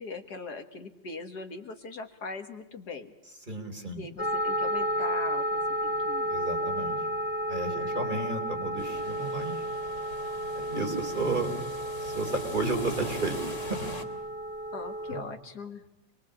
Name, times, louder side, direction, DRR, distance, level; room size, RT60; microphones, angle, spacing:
voice 1, 0.0-3.1 3.9-6.3 7.8-8.3 14.7-15.8, left 4 dB, 60° left, 6 dB, 2.1 m, -41 dB
voice 2, 3.5-4.0 6.3-7.0 7.5-9.5 10.6-11.6 12.0-13.9 15.1-15.2, right 3 dB, 25° right, 3 dB, 4.2 m, -32 dB
sound 1, 4.2-15.2, equal, 5° right, 2.7 m, -32 dB
sound 2, 8.8-14.0, left 2 dB, 40° left, 3.3 m, -43 dB
27.0 x 22.5 x 8.8 m, 0.96 s
omnidirectional pair, 2.0 m